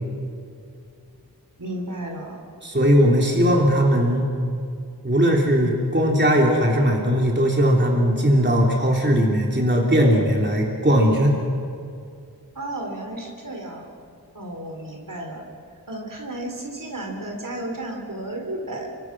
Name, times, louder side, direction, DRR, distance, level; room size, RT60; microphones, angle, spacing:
voice 1, 1.6-2.4 12.5-13.9 14.3-15.5 15.9-18.9, right 1 dB, 60° right, 1 dB, 4.1 m, -33 dB
voice 2, 2.6-4.3 5.0-11.4, equal, 30° right, -1 dB, 3.4 m, -19 dB
28.0 x 24.5 x 6.2 m, 2.4 s
wide cardioid pair, 60°, 38 cm